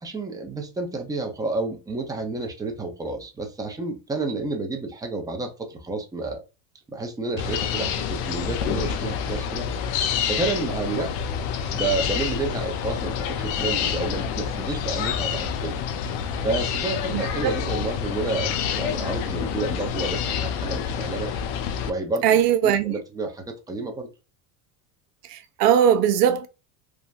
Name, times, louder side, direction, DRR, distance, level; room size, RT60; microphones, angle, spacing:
voice 1, 0.0-6.4 6.9-9.7 10.3-11.1 11.7-15.8 16.4-21.3 21.8-22.2 22.6-24.1, right 3 dB, 10° right, 0.7 m, -30 dB
sound 1, 7.4-21.9, left 7 dB, 60° left, 0.6 m, -28 dB
voice 2, 17.1-17.5 22.2-22.9 25.3-26.5, right 9 dB, 80° right, 0.6 m, -20 dB
3.4 x 2.1 x 2.5 m
hypercardioid pair, 90°, 46 cm